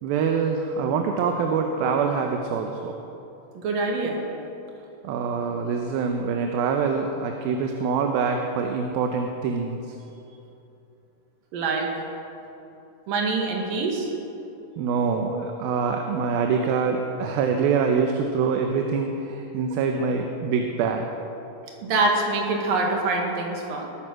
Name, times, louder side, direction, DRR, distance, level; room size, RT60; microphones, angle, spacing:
voice 1, 0.0-3.0 5.0-10.0 14.8-21.1, right 5 dB, 90° right, 3 dB, 2.7 m, -25 dB
voice 2, 3.6-4.2 11.5-11.9 13.1-14.1 21.8-23.9, right 3 dB, 70° right, 0 dB, 3.5 m, -25 dB
20.0 x 9.1 x 6.3 m, 2.9 s
omnidirectional pair, 4.2 m